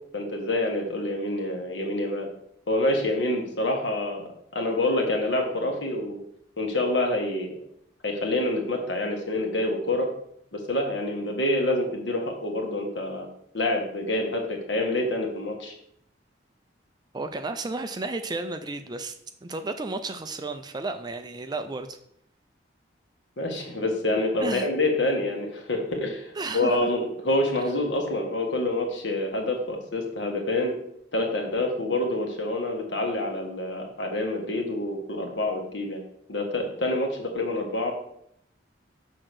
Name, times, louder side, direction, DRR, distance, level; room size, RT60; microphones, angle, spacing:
voice 1, 0.1-2.3 2.7-6.2 6.6-7.5 8.0-10.1 10.5-13.3 13.5-15.7 23.4-30.7 31.1-36.0 36.3-37.9, left 1 dB, 70° left, 2 dB, 1.7 m, -27 dB
voice 2, 17.1-19.2 19.4-22.0 24.4-24.7 26.4-26.9, right 3 dB, 20° right, 8 dB, 0.4 m, -32 dB
6.3 x 3.8 x 6.2 m, 0.71 s
head